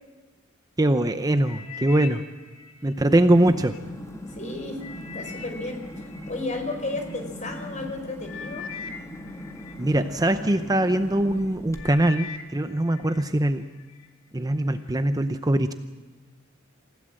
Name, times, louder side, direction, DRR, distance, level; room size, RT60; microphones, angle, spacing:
voice 1, 0.8-2.2 2.8-3.8 9.8-13.7 14.3-15.7, right 1 dB, 20° right, 9 dB, 0.7 m, -22 dB
sound 1, 1.4-3.8 4.3-7.2 7.9-8.0 8.3-10.6 11.2-11.4 11.7-13.3 13.6-14.1 14.7-14.8, left 6 dB, 75° left, 2.6 m, -42 dB
sound 2, 3.0-12.2, equal, 15° left, 1.8 m, -40 dB
voice 2, 4.3-4.8 5.1-8.7, left 2 dB, 35° left, 5 dB, 4.5 m, -33 dB
27.5 x 16.0 x 7.7 m, 1.4 s
head